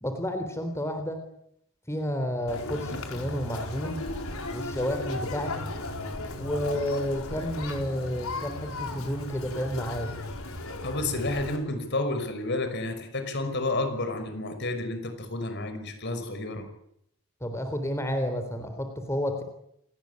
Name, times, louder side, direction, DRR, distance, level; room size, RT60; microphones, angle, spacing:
voice 1, 0.0-1.2 1.9-4.0 4.5-5.7 6.4-10.1 17.4-19.4, equal, 15° left, 6 dB, 3.6 m, -31 dB
Conversation, 2.5-11.6, left 2 dB, 85° left, 4.7 m, -36 dB
voice 2, 10.8-16.7, left 2 dB, 55° left, 8 dB, 5.6 m, -30 dB
29.0 x 19.0 x 9.7 m, 0.76 s
head